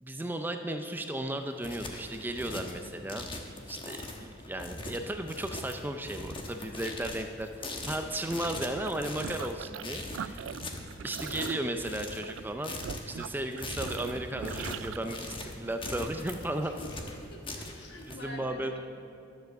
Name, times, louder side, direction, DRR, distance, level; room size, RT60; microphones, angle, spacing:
voice 1, 0.0-3.3 3.7-10.5 11.0-12.8 13.1-16.7 18.1-18.8, right 1 dB, 10° right, 6 dB, 0.4 m, -35 dB
sound 1, 1.4-18.2, left 2 dB, 25° left, 1.1 m, -41 dB
voice 2, 6.6-7.1 7.8-8.0 10.6-11.0 16.6-17.0 17.3-18.8, left 1 dB, 60° left, 1 dB, 1.5 m, -48 dB
sound 2, 8.3-9.9 10.1-15.0, right 8 dB, 85° right, 0.3 m, -41 dB
12.0 x 7.8 x 6.9 m, 2.8 s
head